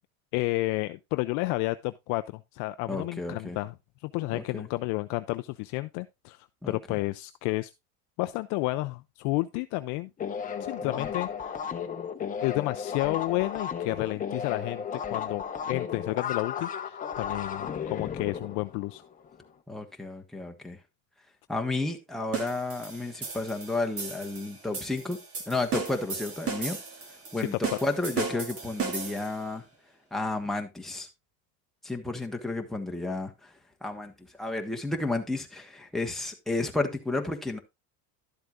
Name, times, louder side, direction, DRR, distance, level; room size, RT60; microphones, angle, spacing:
voice 1, 0.3-3.7 4.0-7.7 8.2-10.1 10.6-11.5 12.4-19.0 27.3-27.4 27.7-27.8, left 21 dB, 45° left, 0.4 m, -31 dB
voice 2, 2.9-3.6 4.3-4.7 6.6-6.8 10.8-11.1 19.7-20.8 21.5-25.2 25.5-26.8 27.3-29.7 30.1-31.1 31.8-33.5 33.8-37.6, left 2 dB, ahead, 1.2 m, -32 dB
sound 1, 10.2-19.4, left 7 dB, 20° left, 0.9 m, -34 dB
sound 2, 22.3-29.4, right 5 dB, 35° right, 2.0 m, -36 dB
12.0 x 7.8 x 2.4 m
supercardioid pair, 145°, 43 cm